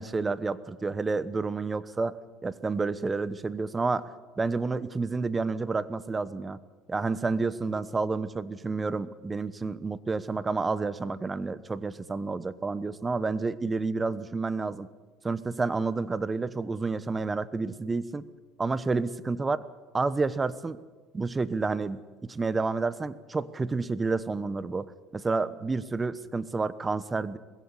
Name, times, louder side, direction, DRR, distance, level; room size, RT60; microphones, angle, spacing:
voice 1, 0.0-2.2 2.4-6.6 6.9-14.9 15.2-18.2 18.6-19.6 19.9-20.8 21.1-27.4, right 3 dB, 20° right, 17 dB, 1.1 m, -30 dB
20.5 x 16.0 x 9.8 m, 1.3 s
supercardioid pair, 95°, 0 cm